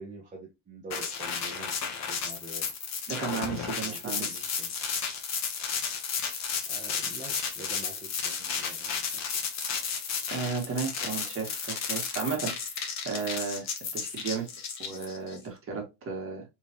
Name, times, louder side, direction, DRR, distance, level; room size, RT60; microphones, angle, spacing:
voice 1, 0.0-2.7 3.6-4.7 6.7-9.5, right 3 dB, 20° right, 0.8 m, -46 dB
sound 1, 0.9-15.4, left 6 dB, 45° left, 1.0 m, -33 dB
voice 2, 3.1-4.4 10.3-12.5 13.1-13.7 13.9-14.5 14.8-16.4, right 5 dB, 35° right, 1.7 m, -33 dB
3.6 x 3.4 x 2.9 m
cardioid pair, 145°, 39 cm